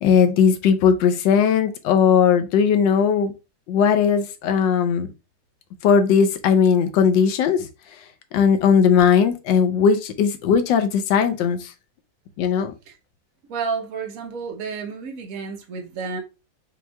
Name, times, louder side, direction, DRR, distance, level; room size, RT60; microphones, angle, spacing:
voice 1, 0.0-3.3 3.7-5.1 5.8-7.6 8.3-11.6 12.4-12.7, left 7 dB, 80° left, 1.3 m, -18 dB
voice 2, 13.5-16.2, right 5 dB, 55° right, 1.1 m, -30 dB
5.3 x 2.9 x 2.2 m
omnidirectional pair, 2.0 m